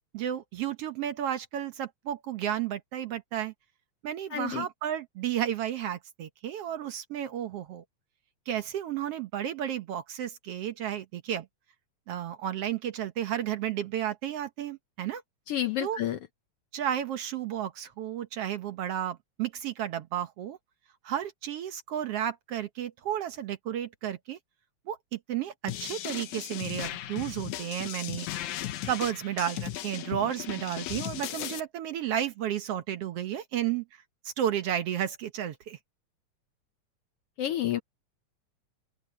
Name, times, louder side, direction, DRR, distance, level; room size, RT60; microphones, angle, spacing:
voice 1, 0.1-3.5 4.0-7.8 8.5-11.5 12.1-15.2 15.8-16.0 16.7-20.6 21.0-24.4 24.9-28.3 28.9-33.8 34.3-35.8, right 10 dB, 65° right, 1.7 m, -32 dB
voice 2, 4.3-4.7 15.5-16.2 37.4-37.8, left 12 dB, 70° left, 1.5 m, -29 dB
sound 1, 25.7-31.6, left 13 dB, 90° left, 2.4 m, -37 dB
open air
omnidirectional pair, 3.3 m